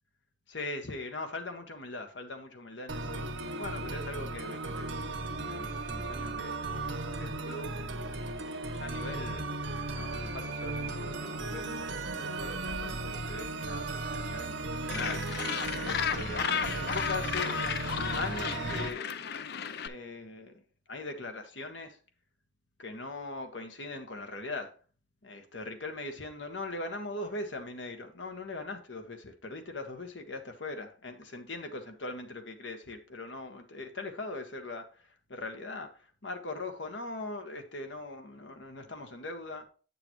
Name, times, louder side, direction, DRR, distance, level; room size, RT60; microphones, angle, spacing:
voice 1, 0.5-3.3 3.6-5.0 5.5-7.7 8.0-9.5 9.9-17.6 18.1-19.2 19.8-20.5 20.9-22.0 22.8-24.7 25.2-39.7, left 2 dB, 80° left, 1.4 m, -41 dB
sound 1, 2.9-18.9, right 2 dB, 90° right, 1.1 m, -36 dB
Gull seagull, 14.9-19.9, left 7 dB, 60° left, 0.5 m, -34 dB
8.6 x 6.9 x 3.1 m
head